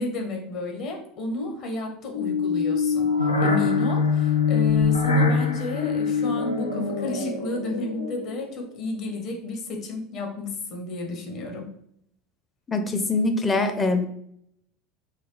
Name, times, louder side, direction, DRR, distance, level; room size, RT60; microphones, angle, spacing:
voice 1, 0.0-3.1 3.4-11.7, left 2 dB, 45° left, 1 dB, 1.0 m, -32 dB
sound 1, 2.1-8.5, left 5 dB, 85° left, 0.4 m, -23 dB
voice 2, 12.7-14.0, left 3 dB, 20° left, 6 dB, 0.6 m, -23 dB
4.0 x 2.3 x 3.2 m, 0.70 s
figure-of-eight pair, 70°, 0 cm